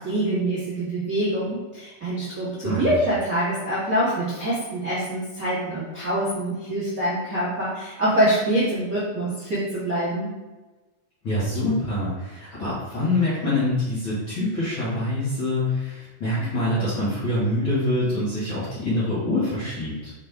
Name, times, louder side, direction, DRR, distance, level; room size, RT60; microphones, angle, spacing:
voice 1, 0.0-10.3, right 1 dB, 65° right, -9 dB, 0.8 m, -25 dB
voice 2, 11.2-20.1, left 1 dB, 45° left, -10 dB, 1.7 m, -25 dB
5.8 x 5.0 x 3.5 m, 1.2 s
omnidirectional pair, 4.8 m